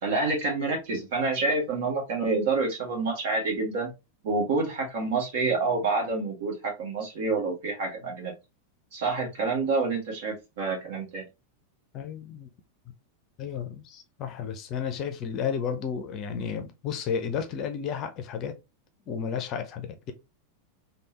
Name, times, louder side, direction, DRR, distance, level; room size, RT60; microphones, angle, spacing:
voice 1, 0.0-3.9 4.2-8.3 8.9-11.2, right 3 dB, 55° right, 1.4 m, -28 dB
voice 2, 11.9-12.5 13.4-18.5 19.1-20.1, left 7 dB, 35° left, 0.6 m, -32 dB
3.4 x 2.3 x 2.9 m
figure-of-eight pair, 90°, 0 cm